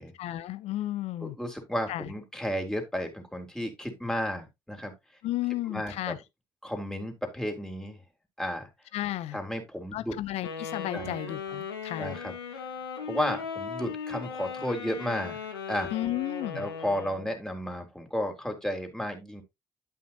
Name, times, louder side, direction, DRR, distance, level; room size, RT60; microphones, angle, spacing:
voice 1, 0.2-1.4 1.9-2.1 5.2-6.2 8.9-9.4 9.9-12.2 15.9-16.7, left 14 dB, 65° left, 0.8 m, -33 dB
voice 2, 1.2-4.9 5.7-6.2 6.6-8.0 8.4-8.7 9.3-10.2 10.9-11.2 12.0-12.3 12.6-12.7 13.0-15.4 15.7-15.9 16.6-19.4, equal, 5° left, 3.7 m, -33 dB
Wind instrument woodwind instrument, 10.4-17.4, left 5 dB, 85° left, 1.2 m, -38 dB
11.5 x 5.8 x 2.9 m
figure-of-eight pair, 45°, 12 cm